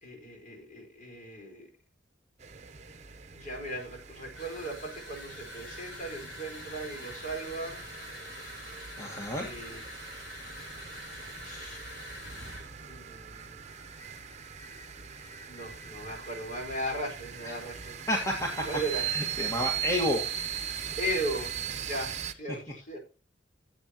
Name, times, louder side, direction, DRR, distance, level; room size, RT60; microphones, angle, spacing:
voice 1, 0.0-1.7 3.3-7.8 8.3-8.7 9.4-9.8 11.4-11.8 12.8-13.7 15.2-18.0 18.7-19.1 21.0-23.0, right 1 dB, 45° left, 4.4 m, -37 dB
sound 1, 2.4-22.3, right 8 dB, 40° right, 0.9 m, -40 dB
sound 2, 4.3-12.7, left 1 dB, 90° left, 5.7 m, -45 dB
voice 2, 9.0-9.5 17.5-17.6 18.1-18.6 18.9-20.2, left 1 dB, 15° left, 1.7 m, -30 dB
14.5 x 8.1 x 3.0 m
head